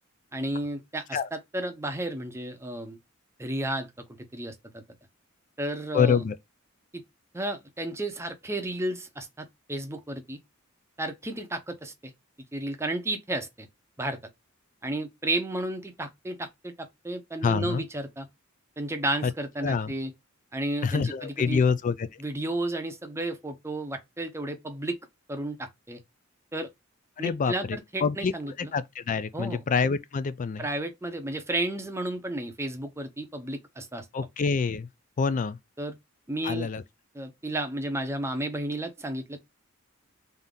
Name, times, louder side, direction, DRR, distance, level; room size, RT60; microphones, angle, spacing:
voice 1, 0.3-3.0 3.4-3.9 4.3-4.8 5.6-6.2 6.9-7.0 7.3-10.4 11.0-12.1 12.5-13.7 14.0-14.2 14.8-18.3 18.8-20.1 20.5-21.6 22.2-25.0 25.3-26.0 26.5-26.7 27.2-28.7 29.3-29.6 30.6-34.1 35.8-36.0 36.3-36.7 37.1-39.4, right 1 dB, 15° right, 0.7 m, -32 dB
voice 2, 5.9-6.4 17.4-17.8 19.2-19.3 19.6-19.9 20.8-22.1 27.2-28.3 28.6-30.7 34.1-34.9 35.2-35.6 36.4-36.8, left 5 dB, 40° left, 0.3 m, -26 dB
3.5 x 2.7 x 3.7 m
head